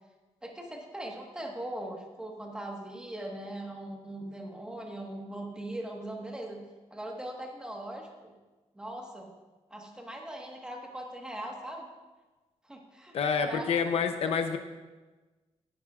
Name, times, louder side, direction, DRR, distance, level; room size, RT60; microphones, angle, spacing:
voice 1, 0.4-6.6 6.9-8.3 8.7-9.3 9.7-11.9 12.6-13.7 14.2-14.6, right 1 dB, 5° right, 0 dB, 1.4 m, -40 dB
voice 2, 13.1-14.6, left 6 dB, 55° left, 7 dB, 0.7 m, -28 dB
17.5 x 10.5 x 2.4 m, 1.2 s
wide cardioid pair, 160°, 12 cm